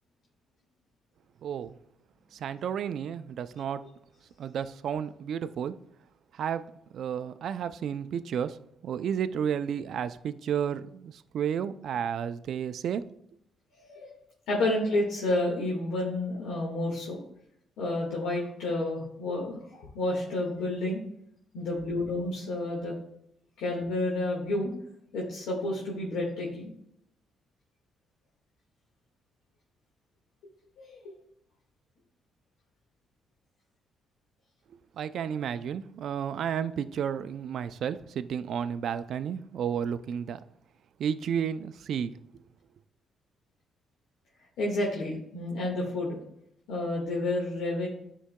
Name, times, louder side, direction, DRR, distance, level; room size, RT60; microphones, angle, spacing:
voice 1, 1.4-1.7 2.3-3.8 4.4-5.8 6.3-6.7 6.9-8.6 8.8-13.0 35.0-40.4 41.0-42.1, right 8 dB, 65° right, 12 dB, 0.3 m, -32 dB
voice 2, 14.5-17.2 17.8-21.0 21.5-23.0 23.6-24.7 25.1-26.7 30.8-31.0 44.6-46.2 46.7-47.9, left 2 dB, 85° left, -4 dB, 1.6 m, -30 dB
10.0 x 4.6 x 2.2 m, 0.73 s
cardioid pair, 90°, 0 cm